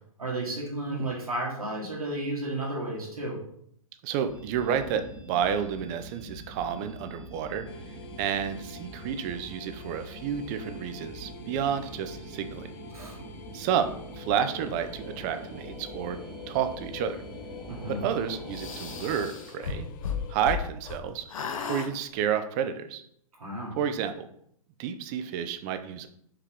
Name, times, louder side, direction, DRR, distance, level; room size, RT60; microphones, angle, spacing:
voice 1, 0.2-3.4 12.9-13.2 17.7-18.1 23.4-23.8, right 1 dB, 90° right, -3 dB, 1.6 m, -33 dB
voice 2, 4.0-7.6 8.2-12.7 13.5-16.2 16.5-17.2 17.9-19.9 20.3-21.3 21.7-23.0 23.8-24.3 24.8-26.1, right 8 dB, 30° right, 9 dB, 0.4 m, -30 dB
sound 1, 4.3-19.3, right 1 dB, 50° right, 1.5 m, -44 dB
Infinite Auubergine, 7.7-20.7, left 7 dB, 35° left, 0.4 m, -47 dB
sound 2, 18.5-21.0 21.3-21.9, left 6 dB, 65° left, 0.8 m, -34 dB
4.8 x 2.9 x 3.6 m, 0.68 s
hypercardioid pair, 125°, 18 cm